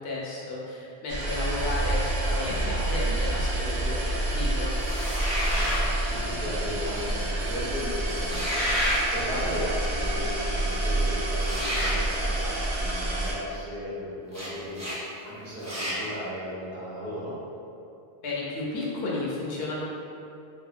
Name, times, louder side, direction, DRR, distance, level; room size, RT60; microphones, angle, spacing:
voice 1, 0.0-4.7 18.2-19.8, left 2 dB, 70° left, -4 dB, 0.8 m, -33 dB
sound 1, 1.1-13.3, right 1 dB, 85° right, 0.9 m, -28 dB
sound 2, 4.8-5.9 8.2-9.0 11.4-12.0 14.3-14.5 14.7-15.0 15.6-16.0, equal, 25° right, 0.4 m, -29 dB
voice 2, 5.4-17.3, equal, 60° right, -10 dB, 1.1 m, -36 dB
2.8 x 2.7 x 2.4 m, 2.7 s
omnidirectional pair, 1.1 m